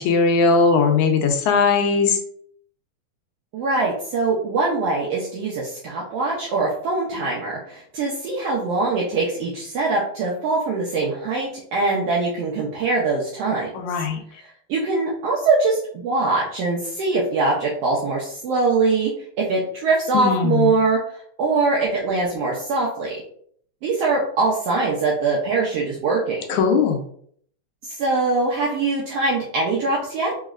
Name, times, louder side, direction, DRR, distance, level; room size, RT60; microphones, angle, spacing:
voice 1, 0.0-2.2 13.7-14.2 20.1-20.7 26.5-27.0, left 4 dB, 80° left, 4 dB, 1.9 m, -19 dB
voice 2, 3.5-13.7 14.7-21.0 21.4-23.2 23.8-26.4 27.8-30.3, right 3 dB, 85° right, -4 dB, 1.3 m, -22 dB
4.7 x 3.1 x 2.4 m, 0.62 s
omnidirectional pair, 3.6 m